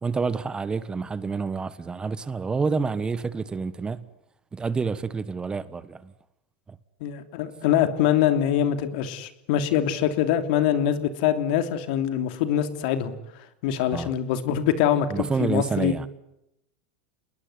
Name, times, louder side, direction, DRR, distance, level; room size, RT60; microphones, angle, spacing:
voice 1, 0.0-4.1 4.5-6.1 6.7-6.8 13.9-14.1 15.1-16.1, right 4 dB, 15° right, 1.3 m, -28 dB
voice 2, 7.0-13.2 13.6-16.1, left 10 dB, 65° left, 3.0 m, -24 dB
28.5 x 21.0 x 9.7 m
supercardioid pair, 115°, 5 cm